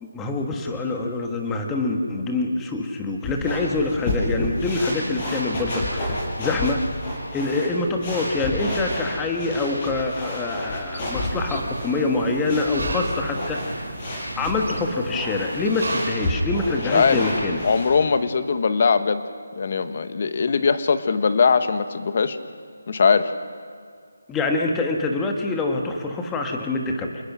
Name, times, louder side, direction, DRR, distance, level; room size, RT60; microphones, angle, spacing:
voice 1, 0.0-6.8 7.3-17.6 24.3-27.2, left 3 dB, 10° left, 2 dB, 1.5 m, -25 dB
sound 1, 3.2-18.0, left 1 dB, 25° left, 7.2 m, -30 dB
sound 2, 10.9-16.2, right 2 dB, 75° right, 4.1 m, -35 dB
voice 2, 16.9-17.2 17.6-19.2 19.5-22.4 22.9-23.3, left 5 dB, 40° left, 11 dB, 1.2 m, -20 dB
28.0 x 20.0 x 6.2 m, 2.1 s
figure-of-eight pair, 170°, 0 cm